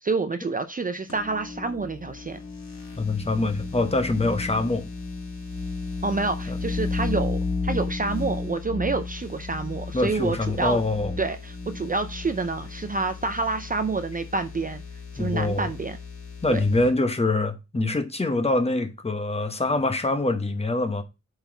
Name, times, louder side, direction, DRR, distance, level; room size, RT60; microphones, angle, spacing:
voice 1, 0.0-2.4 6.0-10.8 11.2-14.8 15.1-16.0 16.5-16.6, right 3 dB, 30° right, 0.5 m, -28 dB
sound 1, 1.1-16.9, left 3 dB, 50° left, 3.4 m, -34 dB
voice 2, 3.0-4.8 6.5-6.6 9.9-11.1 15.2-15.7 16.4-21.0, left 2 dB, 20° left, 1.0 m, -24 dB
8.0 x 4.0 x 3.9 m
wide cardioid pair, 135°, 29 cm